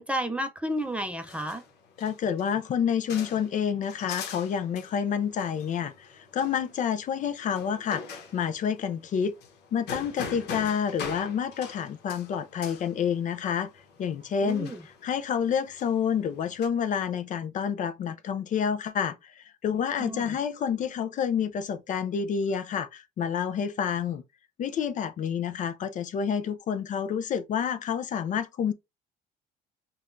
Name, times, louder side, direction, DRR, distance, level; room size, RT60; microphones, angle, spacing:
voice 1, 0.0-1.6 14.4-14.8 20.0-20.4, equal, 5° right, 0.5 m, -32 dB
sound 1, 0.7-16.7, left 5 dB, 80° left, 0.9 m, -44 dB
voice 2, 2.0-9.3 9.7-13.7 14.0-24.2 24.6-28.7, left 7 dB, 50° left, 0.4 m, -29 dB
5.5 x 2.3 x 2.5 m
cardioid pair, 110°, 17 cm